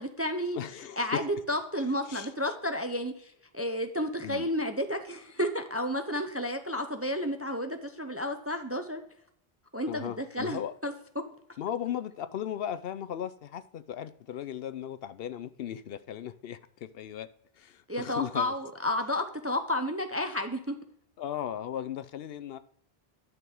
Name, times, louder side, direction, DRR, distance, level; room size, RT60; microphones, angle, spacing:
voice 1, 0.0-0.6 1.0-9.0 9.7-10.9 17.9-20.8, left 1 dB, 20° right, 7 dB, 0.4 m, -31 dB
voice 2, 0.5-1.2 1.8-2.5 4.2-4.5 9.9-10.7 11.6-17.3 17.5-18.6 21.2-22.6, left 10 dB, 70° left, 13 dB, 0.8 m, -37 dB
11.0 x 6.0 x 3.6 m, 0.68 s
omnidirectional pair, 1.1 m